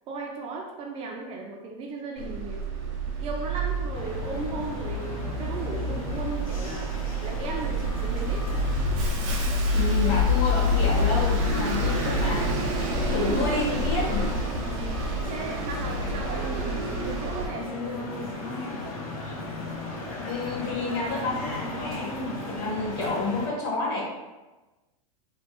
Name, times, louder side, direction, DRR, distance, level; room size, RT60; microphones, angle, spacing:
voice 1, 0.1-2.7 3.2-6.9 7.2-8.5 14.7-15.0 15.3-18.3 22.6-22.7, right 3 dB, 30° right, 1 dB, 0.4 m, -36 dB
Bus, 2.2-17.5, left 1 dB, 60° right, 0.7 m, -27 dB
sound 1, 3.9-23.5, left 2 dB, 75° left, 1.0 m, -37 dB
voice 2, 9.7-14.2 20.2-22.1 22.5-24.0, left 3 dB, 50° left, -3 dB, 1.1 m, -29 dB
3.1 x 2.1 x 3.0 m, 1.1 s
supercardioid pair, 140°, 18 cm